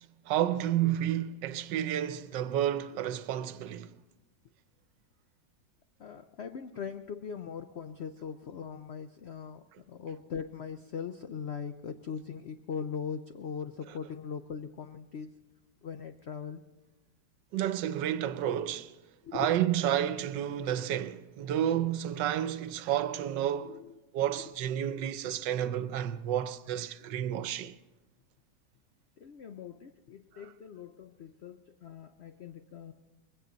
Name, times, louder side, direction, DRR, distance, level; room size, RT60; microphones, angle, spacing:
voice 1, 0.3-3.9 17.5-19.0 19.3-23.8 24.1-27.7, right 11 dB, 85° right, 1.4 m, -30 dB
voice 2, 6.0-15.3 15.8-16.6 19.2-19.5 23.6-23.9 27.0-27.1 29.2-32.9, left 6 dB, 85° left, 0.5 m, -40 dB
21.0 x 17.0 x 3.9 m
omnidirectional pair, 1.9 m